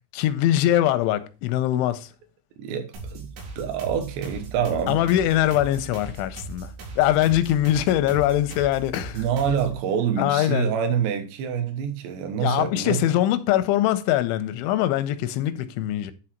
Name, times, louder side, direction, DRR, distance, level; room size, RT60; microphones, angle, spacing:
voice 1, 0.1-2.1 4.9-9.2 10.2-10.7 12.4-16.1, left 13 dB, 90° left, 3.1 m, -22 dB
voice 2, 2.6-3.3 3.6-5.0 9.1-13.0, right 8 dB, 75° right, 3.2 m, -26 dB
sound 1, 2.9-9.8, right 3 dB, 90° right, 5.0 m, -39 dB
11.5 x 4.1 x 4.4 m
omnidirectional pair, 5.3 m